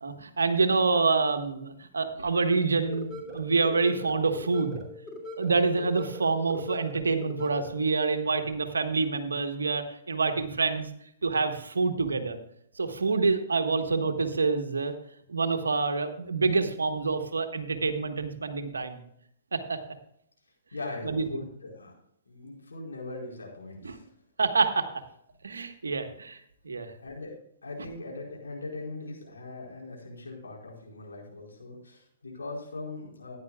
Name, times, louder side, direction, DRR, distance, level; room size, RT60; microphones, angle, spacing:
voice 1, 0.0-4.8 5.4-10.9 11.2-12.4 12.8-14.9 15.3-19.0 19.5-19.8 21.0-21.4 23.8-24.0 24.4-24.9 25.4-26.4 26.6-26.9, right 4 dB, 85° right, 7 dB, 1.3 m, -27 dB
sound 1, 2.9-7.9, left 1 dB, ahead, 2.8 m, -41 dB
voice 2, 20.7-21.9 22.3-24.1 27.0-27.3 27.6-33.4, left 2 dB, 85° left, -1 dB, 4.5 m, -40 dB
15.0 x 10.5 x 2.4 m, 0.71 s
hypercardioid pair, 120°, 0 cm